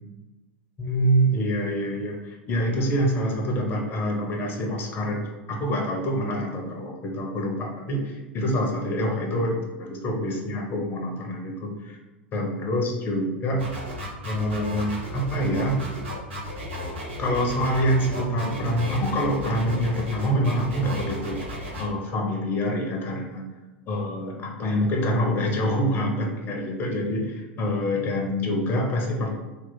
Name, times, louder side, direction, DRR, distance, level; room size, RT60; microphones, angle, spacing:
voice 1, 0.8-12.0 12.3-13.6 14.2-15.8 17.2-21.4 21.8-23.4 23.9-29.3, equal, 30° left, 1 dB, 0.7 m, -26 dB
sound 1, 13.6-21.8, left 1 dB, 70° right, 1.3 m, -34 dB
3.0 x 2.1 x 3.8 m, 1.2 s
figure-of-eight pair, 90°, 6 cm